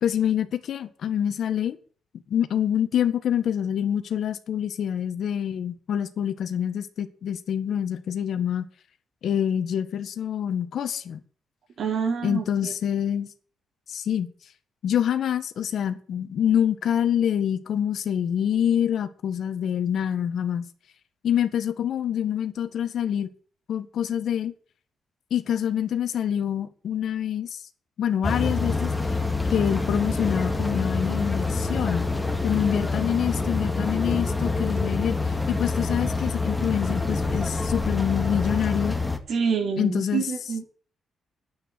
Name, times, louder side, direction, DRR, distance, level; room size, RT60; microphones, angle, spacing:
voice 1, 0.0-1.8 2.3-8.6 9.2-11.2 12.2-13.3 13.9-14.3 14.8-20.7 21.2-23.3 23.7-24.5 25.3-27.6 28.0-28.9 29.5-32.1 32.4-39.0 39.8-40.2, left 9 dB, 65° left, 1.7 m, -26 dB
voice 2, 11.8-12.7 39.3-40.6, right 6 dB, 60° right, 4.3 m, -27 dB
sound 1, 28.2-39.2, left 3 dB, 10° left, 2.1 m, -26 dB
10.0 x 8.9 x 10.0 m
cardioid pair, 115°, 0 cm